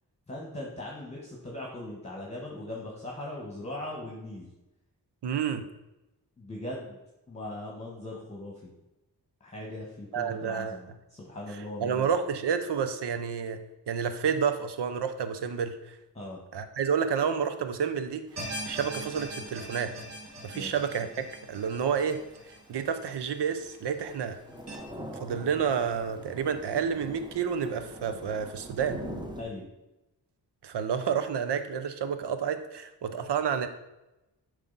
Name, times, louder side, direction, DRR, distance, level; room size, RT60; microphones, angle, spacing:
voice 1, 0.3-4.5 6.4-7.0 7.3-8.7 9.4-12.1 16.1-16.4 20.5-20.8 29.4-29.6, left 1 dB, 15° left, -2 dB, 1.4 m, -39 dB
voice 2, 5.2-5.6 10.1-10.8 11.8-13.6 13.9-16.0 16.5-19.9 20.4-21.1 21.5-22.2 22.7-24.4 25.2-29.0 30.6-33.7, right 7 dB, 80° right, 10 dB, 0.7 m, -29 dB
Thunder / Rain, 18.3-29.4, equal, 10° right, 1.0 m, -45 dB
sound 1, 18.4-23.6 23.9-24.0 24.7-24.8, right 1 dB, 40° right, 2.2 m, -41 dB
7.5 x 4.9 x 4.0 m, 0.96 s
cardioid pair, 75°, 41 cm